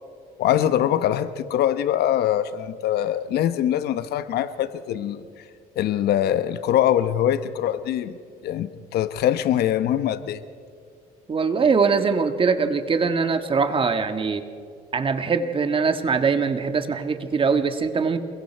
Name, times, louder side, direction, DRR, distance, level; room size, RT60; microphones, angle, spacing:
voice 1, 0.4-5.5 5.7-8.2 8.4-10.4, left 11 dB, 70° left, 0.9 m, -23 dB
voice 2, 11.3-14.4 14.9-18.2, right 5 dB, 30° right, 1.6 m, -22 dB
28.0 x 22.5 x 4.5 m
cardioid pair, 110°, 17 cm